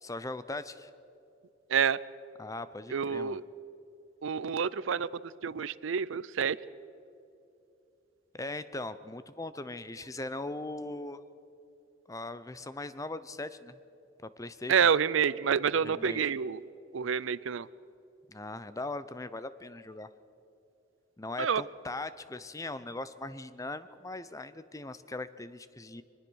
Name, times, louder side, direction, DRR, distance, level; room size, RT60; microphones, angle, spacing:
voice 1, 0.0-0.9 2.4-3.4 8.3-11.2 12.1-13.8 14.2-14.8 15.8-16.3 18.3-20.1 21.2-26.0, left 2 dB, 15° left, 14 dB, 0.7 m, -40 dB
voice 2, 2.9-3.4 4.2-5.1 5.4-6.6 14.7-16.6 16.9-17.7 21.4-21.6, right 7 dB, 70° right, 19 dB, 0.5 m, -28 dB
23.0 x 20.5 x 6.3 m, 2.7 s
head